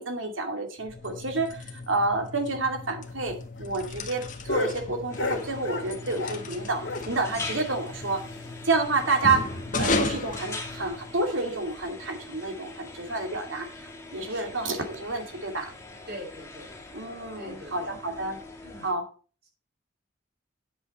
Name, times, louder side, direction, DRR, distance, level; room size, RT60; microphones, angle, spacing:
voice 1, 0.0-8.2 8.6-9.5 9.8-13.7 14.1-15.7 16.9-18.4 18.8-19.0, right 3 dB, 85° right, 4 dB, 2.5 m, -29 dB
sound 1, 0.8-11.3, left 3 dB, 40° left, 1.4 m, -35 dB
sound 2, 3.1-6.5 6.8-8.8 9.1-9.2 9.5-9.6 10.0-10.1 10.6-10.9 11.8-11.9, left 3 dB, 70° left, 2.2 m, -35 dB
sound 3, 5.1-18.9, left 2 dB, 15° left, 2.1 m, -43 dB
voice 2, 14.2-14.6 16.1-16.7 17.4-18.0 18.6-18.9 19.4-19.5, equal, 55° right, -3 dB, 6.5 m, -43 dB
10.0 x 7.9 x 4.2 m, 0.37 s
head